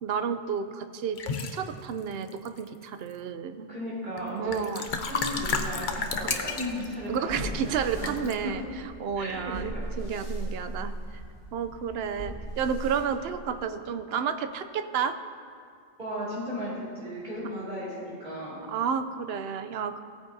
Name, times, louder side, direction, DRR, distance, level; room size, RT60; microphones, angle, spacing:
voice 1, 0.0-3.7 4.4-4.8 6.2-6.3 7.1-8.6 9.0-9.7 10.0-11.2 11.5-15.2 18.7-20.0, right 7 dB, 75° right, 9 dB, 0.8 m, -31 dB
sound 1, 1.2-1.6 2.3-2.8 4.2-4.3 4.5-6.9 8.0-8.3, left 5 dB, 55° left, 0.8 m, -31 dB
voice 2, 3.7-7.6 8.0-8.5 9.2-9.8 16.0-18.6, equal, 50° right, -9 dB, 2.8 m, -35 dB
sound 2, 4.9-13.8, right 1 dB, 70° left, 2.1 m, -39 dB
16.0 x 9.3 x 2.7 m, 2.3 s
omnidirectional pair, 1.0 m